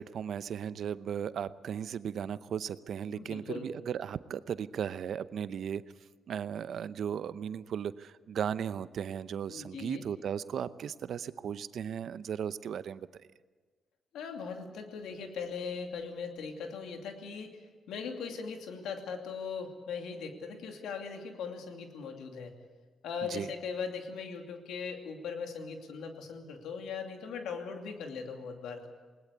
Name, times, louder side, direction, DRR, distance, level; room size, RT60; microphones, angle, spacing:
voice 1, 0.0-5.8 6.3-13.1 23.3-23.5, right 8 dB, 70° right, 15 dB, 0.7 m, -36 dB
voice 2, 3.1-3.7 9.5-10.1 14.1-17.6 17.9-22.5 23.0-28.9, left 5 dB, 85° left, 4 dB, 2.6 m, -39 dB
20.0 x 19.5 x 8.2 m, 1.4 s
cardioid pair, 70°, 0 cm